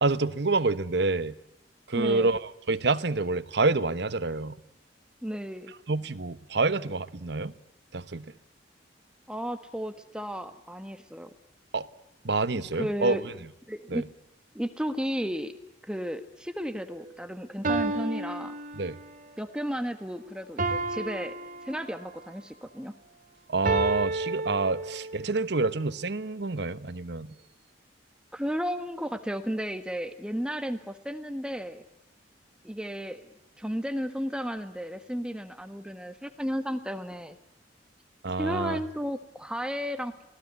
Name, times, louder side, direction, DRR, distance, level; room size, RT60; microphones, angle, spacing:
voice 1, 0.0-1.3 1.9-4.6 5.9-7.5 7.9-8.3 11.7-11.9 12.2-13.2 13.9-14.0 18.8-19.0 23.5-27.3 38.2-38.8, right 3 dB, 65° right, 1.1 m, -27 dB
voice 2, 1.9-2.3 5.2-5.7 9.3-11.3 12.5-13.3 13.7-14.0 14.5-15.5 15.8-18.5 19.4-21.3 21.6-22.9 28.3-31.8 32.6-37.4 38.4-40.3, equal, 5° right, 1.4 m, -33 dB
sound 1, 16.9-17.0 17.6-19.2 20.6-22.2 23.6-25.3, right 2 dB, 50° right, 2.2 m, -31 dB
26.5 x 18.5 x 9.5 m
head